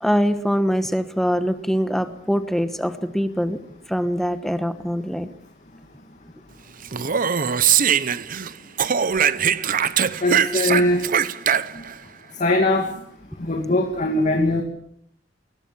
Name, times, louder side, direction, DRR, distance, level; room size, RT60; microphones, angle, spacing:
voice 1, 0.0-3.6 3.9-5.3, equal, ahead, 9 dB, 1.1 m, -23 dB
Speech, 6.8-8.5 8.8-11.9, right 8 dB, 50° right, 0.8 m, -21 dB
voice 2, 10.2-11.0 12.4-12.9 13.4-14.6, left 1 dB, 40° left, 3 dB, 2.4 m, -20 dB
21.5 x 20.0 x 7.3 m, 0.70 s
head